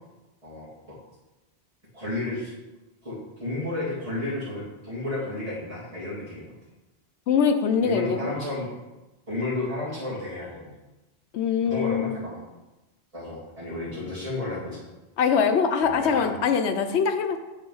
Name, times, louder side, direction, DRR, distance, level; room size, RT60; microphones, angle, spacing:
voice 1, 1.9-2.5 3.0-6.5 7.8-8.7 9.3-10.7 11.6-12.4 13.1-14.8 15.8-16.3, left 2 dB, 30° right, -11 dB, 2.5 m, -32 dB
voice 2, 7.3-8.3 11.3-12.2 15.2-17.4, left 6 dB, 85° left, 8 dB, 1.0 m, -23 dB
8.4 x 4.4 x 5.5 m, 1.1 s
omnidirectional pair, 1.1 m